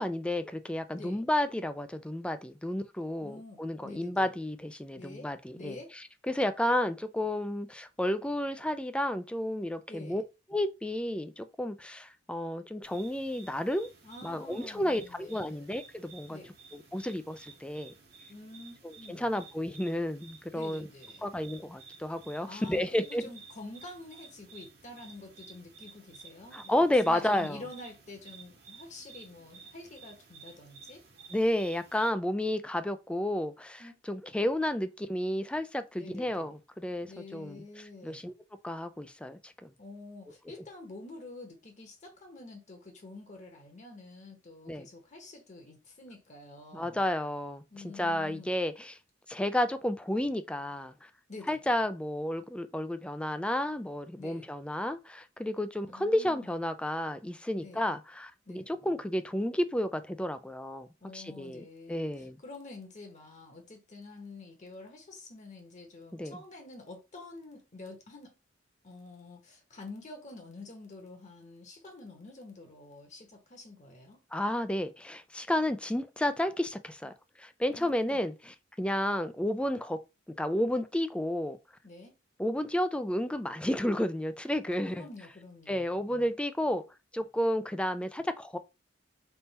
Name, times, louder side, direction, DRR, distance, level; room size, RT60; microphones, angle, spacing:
voice 1, 0.0-5.8 6.3-10.2 10.5-13.9 14.2-16.4 16.7-17.9 19.1-20.9 21.2-23.3 26.5-27.6 31.3-37.6 38.0-38.3 38.6-39.7 44.7-44.9 46.7-49.0 49.3-50.9 51.5-60.9 61.1-62.4 66.1-66.4 74.3-77.1 77.4-78.3 78.8-80.0 80.4-81.6 82.4-85.0 85.7-86.8 87.1-88.6, left 1 dB, 5° left, 0.3 m, -31 dB
voice 2, 3.2-4.3 5.0-5.9 9.9-10.2 14.0-15.6 16.3-16.5 18.3-19.4 20.5-21.3 22.5-31.0 33.8-33.9 36.0-36.5 37.1-38.2 39.8-47.0 47.7-48.5 51.3-51.8 54.2-54.5 55.8-56.6 57.6-57.9 58.5-58.7 61.0-68.3 68.8-74.2 77.7-78.3 81.8-82.2 84.7-85.9, left 2 dB, 40° left, 1.2 m, -48 dB
sound 1, 12.8-32.1, right 4 dB, 55° right, 1.3 m, -53 dB
3.6 x 2.7 x 4.1 m
head